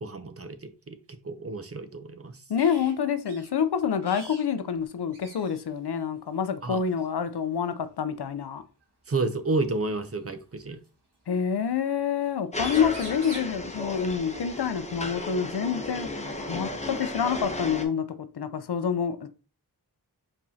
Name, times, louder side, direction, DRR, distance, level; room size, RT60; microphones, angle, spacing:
voice 1, 0.0-0.9 1.2-2.3 6.6-6.8 9.1-10.8, right 3 dB, 35° right, 0.7 m, -30 dB
voice 2, 2.5-8.6 11.3-16.1 16.5-18.1 18.3-19.3, left 7 dB, 75° left, 0.6 m, -27 dB
sound 1, 2.6-2.9 3.3-3.5 4.0-4.5 4.7-4.8 5.1-5.7 6.9-7.1 8.8-8.9 10.0-10.9 12.2-12.3 12.5-13.6 15.5-15.6 16.0-17.0, right 1 dB, 85° right, 1.4 m, -45 dB
sound 2, 12.5-17.9, left 1 dB, 15° left, 0.8 m, -34 dB
4.9 x 3.6 x 2.7 m
wide cardioid pair, 60°, 40 cm